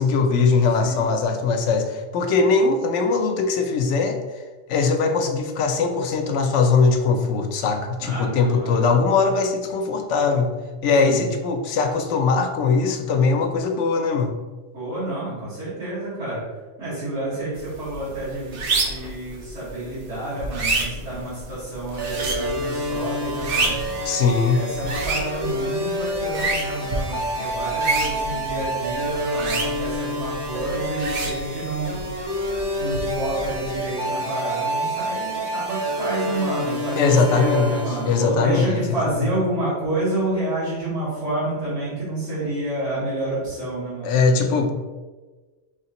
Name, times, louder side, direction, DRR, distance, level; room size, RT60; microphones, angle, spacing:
voice 1, 0.0-4.2 4.7-10.5 10.8-14.3 24.0-24.7 37.0-39.3 44.0-44.7, left 4 dB, 90° left, 6 dB, 0.9 m, -21 dB
voice 2, 8.0-8.8 11.0-11.3 14.7-16.4 16.8-23.8 24.5-32.0 32.8-44.2, right 1 dB, 85° right, -13 dB, 2.0 m, -29 dB
sound 1, 17.6-33.9, right 3 dB, 55° right, 0.8 m, -30 dB
sound 2, 22.0-38.4, equal, 40° right, 0.4 m, -28 dB
4.8 x 3.2 x 2.9 m, 1.3 s
omnidirectional pair, 1.2 m